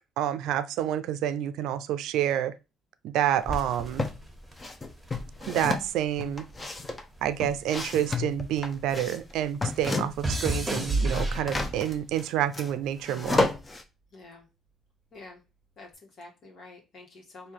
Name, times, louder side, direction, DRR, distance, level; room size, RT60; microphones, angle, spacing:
voice 1, 0.2-2.5 3.0-4.1 5.5-6.4 7.2-13.5, right 11 dB, 85° right, 0.4 m, -28 dB
sound 1, 3.4-4.2 4.6-10.4 10.6-13.8, left 3 dB, 25° left, 0.7 m, -32 dB
sound 2, 3.5-6.0 6.3-8.9 9.2-12.0 12.7-13.1, right 2 dB, 10° right, 1.3 m, -32 dB
voice 2, 14.1-14.5 15.1-15.4 15.8-17.5, left 3 dB, 65° left, 1.5 m, -48 dB
3.6 x 2.7 x 4.6 m
cardioid pair, 85°, 0 cm